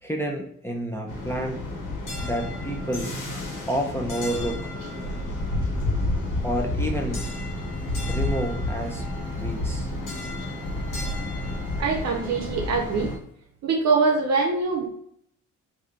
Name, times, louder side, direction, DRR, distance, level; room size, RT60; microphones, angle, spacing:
voice 1, 0.0-1.6 2.2-3.1 3.7-4.6 6.4-7.3 8.1-9.1 9.4-9.9, equal, 10° left, 0 dB, 0.6 m, -29 dB
sound 1, 1.1-13.2, left 1 dB, 85° left, 1.3 m, -30 dB
voice 2, 11.8-13.1 13.6-14.9, right 4 dB, 60° right, 1 dB, 0.7 m, -23 dB
3.3 x 2.7 x 3.7 m, 0.69 s
cardioid pair, 90°, 30 cm